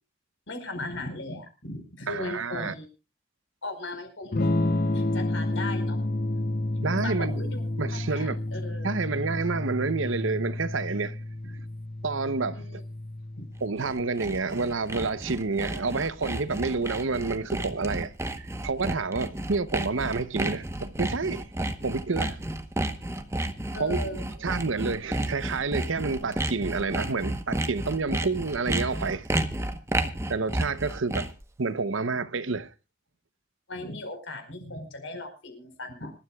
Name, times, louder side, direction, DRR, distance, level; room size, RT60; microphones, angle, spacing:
voice 1, 0.5-2.8 3.6-4.4 4.9-6.0 7.0-7.6 8.1-8.9 12.5-12.8 13.4-13.5 23.7-24.3 33.7-36.1, left 2 dB, 70° left, 4.9 m, -37 dB
voice 2, 2.1-2.7 6.8-8.4 8.8-11.2 12.0-12.8 13.6-18.1 18.4-21.5 21.8-22.4 23.8-24.1 24.4-29.3 30.3-31.3 31.6-32.7, right 4 dB, 70° right, 0.8 m, -29 dB
Electric guitar / Strum, 4.3-14.1, left 1 dB, 50° left, 0.8 m, -30 dB
Sawing, 13.6-31.5, right 1 dB, 15° right, 1.0 m, -31 dB
26.0 x 13.0 x 2.3 m
head